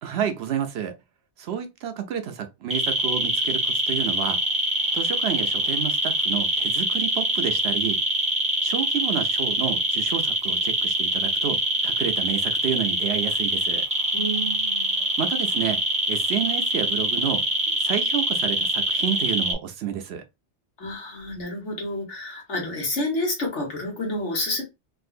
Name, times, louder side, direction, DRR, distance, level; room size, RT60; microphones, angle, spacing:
voice 1, 0.0-0.9 1.4-4.4 4.9-8.0 8.6-13.8 15.2-15.8 16.1-17.4 17.8-20.2, right 9 dB, 70° right, 0.8 m, -30 dB
sound 1, 2.7-19.5, right 1 dB, 5° right, 0.9 m, -24 dB
voice 2, 14.1-15.0 20.8-24.6, left 1 dB, 80° left, 1.8 m, -29 dB
3.6 x 2.6 x 2.4 m
omnidirectional pair, 1.2 m